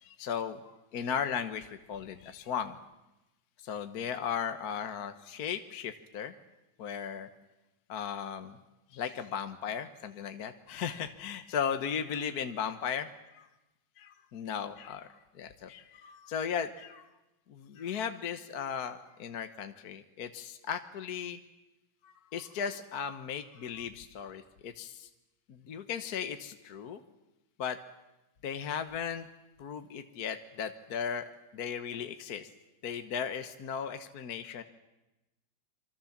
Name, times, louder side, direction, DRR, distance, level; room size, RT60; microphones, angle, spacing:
voice 1, 0.0-2.8 3.6-6.3 6.8-7.3 7.9-8.6 8.9-13.5 14.0-15.1 15.3-17.1 17.5-21.4 22.0-25.1 25.5-27.0 27.6-27.8 28.4-29.3 29.6-31.2 31.5-32.5 32.8-34.6, left 7 dB, 55° left, 8 dB, 1.5 m, -36 dB
26.5 x 24.5 x 7.3 m, 1.0 s
omnidirectional pair, 2.1 m